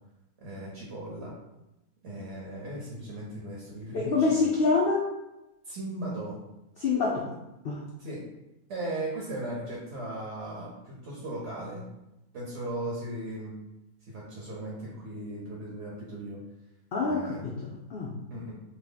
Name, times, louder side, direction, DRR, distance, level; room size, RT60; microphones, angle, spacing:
voice 1, 0.4-1.3 2.0-4.5 5.6-6.4 8.0-8.2 8.7-11.9 12.3-13.5 14.1-16.4 17.1-17.7 18.3-18.5, right 1 dB, 55° right, -4 dB, 1.0 m, -37 dB
voice 2, 3.9-5.1 6.8-7.3 7.6-7.8 16.9-18.1, left 4 dB, 80° left, -2 dB, 0.5 m, -26 dB
2.8 x 2.8 x 3.8 m, 0.95 s
omnidirectional pair, 1.5 m